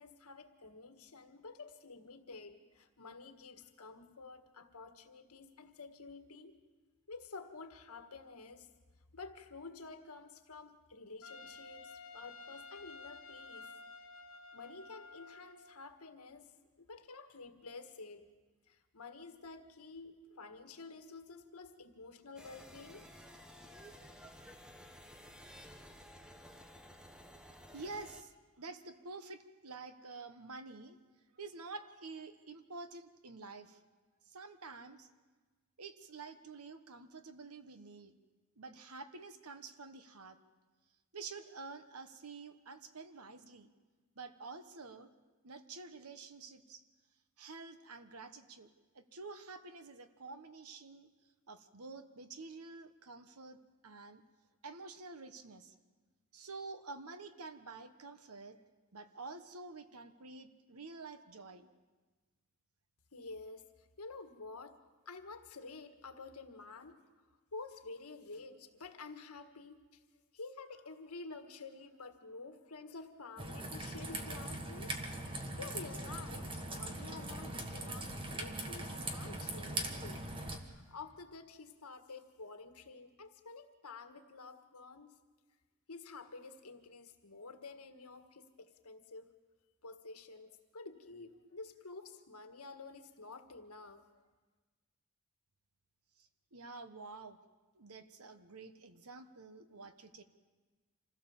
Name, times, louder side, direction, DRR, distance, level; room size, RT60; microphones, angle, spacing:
voice 1, 0.0-6.6 7.1-8.7 9.1-13.7 14.5-18.3 18.7-23.1 63.1-64.8 65.0-67.0 67.3-70.0 70.3-75.0 75.5-85.1 85.9-89.3 89.8-94.2, left 3 dB, 85° left, 7 dB, 1.6 m, -50 dB
Trumpet, 11.2-15.8, left 3 dB, 70° left, 1.3 m, -52 dB
sound 1, 22.4-28.2, equal, 5° right, 1.1 m, -54 dB
voice 2, 27.7-31.0 31.4-33.8 34.3-35.1 35.8-38.2 38.6-40.4 41.1-43.7 44.2-45.1 45.4-46.8 47.4-51.1 51.5-54.2 54.6-55.7 56.3-58.6 58.9-61.7 96.5-97.4 97.7-100.2, right 3 dB, 85° right, 10 dB, 1.3 m, -49 dB
Raindrop / Trickle dribble, 73.4-80.6, right 1 dB, 25° right, 1.6 m, -41 dB
26.5 x 16.0 x 7.2 m, 1.3 s
head